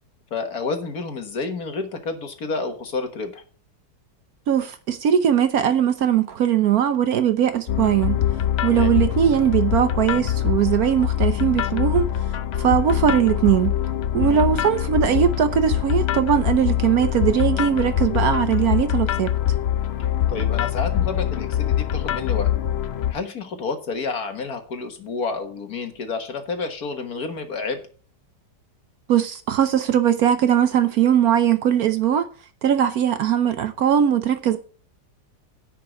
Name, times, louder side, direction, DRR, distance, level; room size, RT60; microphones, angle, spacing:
voice 1, 0.3-3.4 8.7-8.9 14.2-14.5 20.0-22.5 23.1-27.8, left 4 dB, 55° left, 1.9 m, -30 dB
voice 2, 4.5-8.2 8.6-12.0 12.6-13.7 14.1-19.3 29.1-32.3 32.6-34.6, right 9 dB, 65° right, 1.1 m, -20 dB
sound 1, 7.7-23.1, left 11 dB, 80° left, 0.5 m, -23 dB
10.5 x 4.7 x 7.8 m
omnidirectional pair, 1.9 m